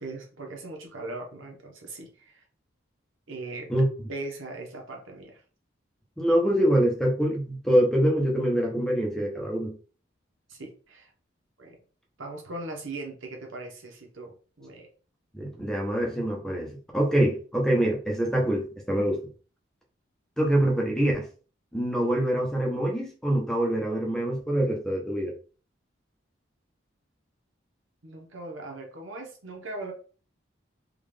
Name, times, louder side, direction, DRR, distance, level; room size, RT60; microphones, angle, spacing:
voice 1, 0.0-2.4 3.3-3.7 4.1-5.4 10.5-11.1 11.6-11.8 12.2-14.9 28.0-29.9, right 2 dB, 85° right, 1.1 m, -39 dB
voice 2, 6.2-9.8 15.3-19.2 20.4-21.3 21.7-25.3, right 1 dB, 5° left, 0.7 m, -25 dB
3.8 x 2.4 x 3.3 m
head